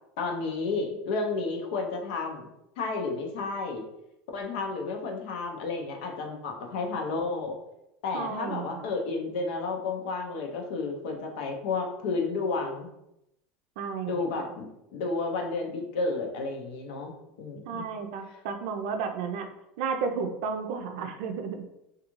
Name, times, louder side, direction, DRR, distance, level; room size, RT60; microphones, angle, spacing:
voice 1, 0.2-2.5 2.8-3.8 4.3-7.6 8.0-12.9 14.1-17.8, left 3 dB, 80° left, 2 dB, 0.6 m, -31 dB
voice 2, 8.1-8.9 13.8-14.5 17.7-19.5 19.8-21.6, right 5 dB, 75° right, 6 dB, 0.4 m, -33 dB
2.4 x 2.3 x 3.0 m, 0.86 s
supercardioid pair, 135°, 5 cm